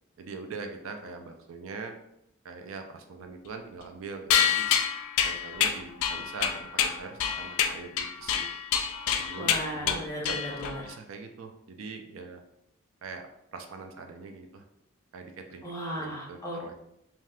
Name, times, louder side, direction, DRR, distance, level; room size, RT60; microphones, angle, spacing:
voice 1, 0.2-1.9 2.4-4.8 5.2-8.5 9.1-10.3 10.6-12.4 13.0-13.2 13.5-14.6 15.1-15.6 16.0-16.7, right 4 dB, 60° right, 5 dB, 0.3 m, -42 dB
sound 1, 4.3-10.9, left 8 dB, 70° left, 0.3 m, -27 dB
voice 2, 9.4-10.9 15.6-16.7, equal, 15° left, -2 dB, 0.6 m, -36 dB
2.7 x 2.3 x 3.3 m, 0.79 s
head